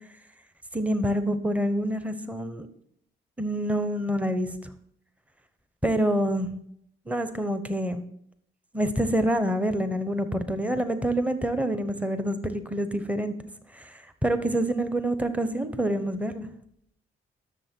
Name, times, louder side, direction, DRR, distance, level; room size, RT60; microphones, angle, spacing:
voice 1, 0.7-2.7 3.4-4.5 5.8-6.5 7.1-8.0 8.7-13.3 13.7-16.5, right 1 dB, 5° right, 10 dB, 0.9 m, -27 dB
12.0 x 6.7 x 4.4 m, 0.69 s
cardioid pair, 90°, 20 cm